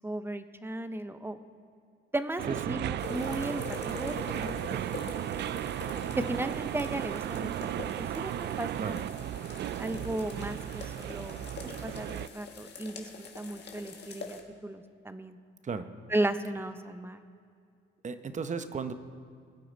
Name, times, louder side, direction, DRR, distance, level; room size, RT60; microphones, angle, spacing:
voice 1, 0.0-1.4 2.1-2.4 2.7-4.6 6.2-7.5 7.8-9.2 9.8-13.1 13.3-15.4 16.1-17.2, right 1 dB, 10° right, 10 dB, 0.8 m, -35 dB
sound 1, 2.4-12.3, right 11 dB, 60° right, 0.4 m, -35 dB
voice 2, 2.5-2.8 8.8-9.0 15.6-15.9 18.0-18.9, right 5 dB, 40° right, 10 dB, 0.9 m, -34 dB
sound 2, 3.0-14.4, left 4 dB, 60° left, 1.7 m, -45 dB
22.0 x 9.3 x 4.0 m, 2.3 s
cardioid pair, 90°, 20 cm